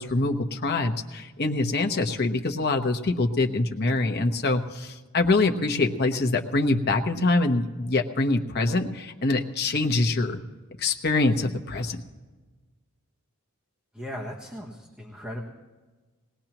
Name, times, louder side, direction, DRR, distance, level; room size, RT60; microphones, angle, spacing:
voice 1, 0.0-10.4 10.8-12.0, left 2 dB, 50° left, 4 dB, 1.0 m, -24 dB
voice 2, 13.9-15.5, equal, 5° right, -2 dB, 1.3 m, -37 dB
20.5 x 19.5 x 3.0 m, 1.3 s
head